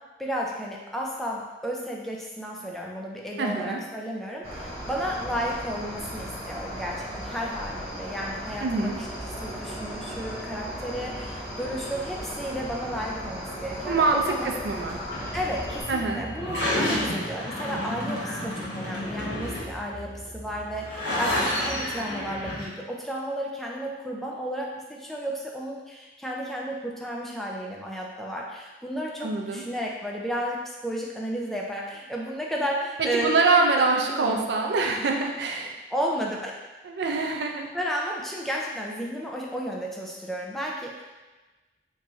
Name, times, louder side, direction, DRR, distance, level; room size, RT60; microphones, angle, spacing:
voice 1, 0.2-14.5 15.3-33.3 34.1-34.4 35.9-36.6 37.7-41.0, equal, ahead, -2 dB, 0.3 m, -33 dB
voice 2, 3.4-3.8 8.6-9.0 13.8-14.2 14.6-15.0 15.9-16.2 29.2-29.6 33.1-35.8 36.8-37.7, right 3 dB, 75° right, 2 dB, 0.4 m, -24 dB
Cricket, 4.4-15.8, equal, 15° right, 1.2 m, -36 dB
sound 1, 14.9-22.6, left 1 dB, 90° left, 1.1 m, -31 dB
3.1 x 2.6 x 3.5 m, 1.2 s
head